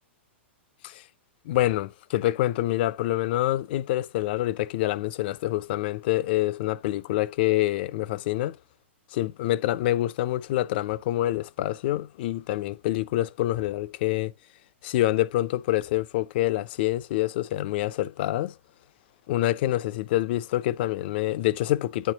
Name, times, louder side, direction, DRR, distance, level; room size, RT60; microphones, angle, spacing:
voice 1, 1.5-8.6 9.1-14.3 14.8-18.5 19.3-22.1, left 15 dB, 55° left, 0.4 m, -26 dB
8.8 x 4.4 x 2.8 m
hypercardioid pair, 110°, 7 cm